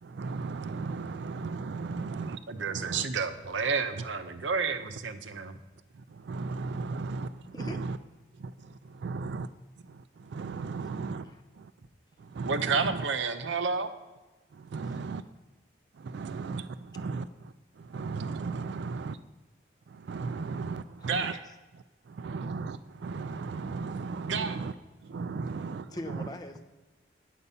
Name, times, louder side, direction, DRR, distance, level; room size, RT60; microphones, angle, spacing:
voice 1, 0.0-3.1 5.9-8.0 8.4-9.5 9.8-11.3 11.6-11.7 12.2-13.0 14.5-15.2 15.9-19.2 19.9-21.4 22.1-24.7 25.0-26.3, right 4 dB, 65° right, 13 dB, 0.3 m, -36 dB
voice 2, 2.5-5.6 12.4-13.9 21.0-21.4 24.3-24.6, right 5 dB, 85° right, 10 dB, 0.7 m, -30 dB
voice 3, 7.4-7.8 11.2-11.4 14.8-15.0 21.0-21.4 25.9-26.6, equal, 20° left, 5 dB, 0.7 m, -42 dB
8.5 x 8.0 x 5.5 m, 1.1 s
head